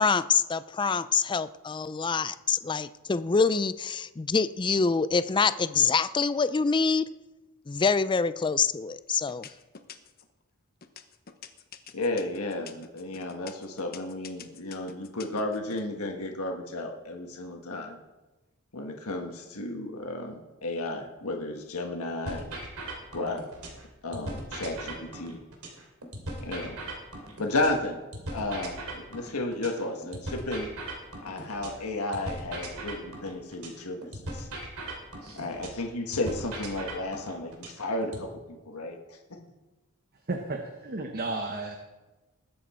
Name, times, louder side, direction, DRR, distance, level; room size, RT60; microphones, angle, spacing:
voice 1, 0.0-7.1 7.7-9.4, left 5 dB, 20° left, 14 dB, 0.4 m, -25 dB
sound 1, 8.4-8.8 9.3-10.3 10.8-15.8, left 7 dB, 45° left, 0.9 m, -46 dB
voice 2, 11.9-18.0 18.7-22.5 23.1-23.4 24.0-25.4 26.4-26.8 27.4-28.0 28.3-30.7 31.2-34.5 35.3-39.2, left 2 dB, 75° left, 2 dB, 1.5 m, -33 dB
sound 2, 22.3-23.8 24.1-27.8 28.1-31.8 32.1-35.8 36.1-38.3, right 1 dB, 75° right, 2.7 m, -39 dB
voice 3, 40.3-41.7, right 2 dB, 45° right, 3 dB, 1.1 m, -33 dB
20.5 x 7.8 x 4.4 m, 1.1 s
head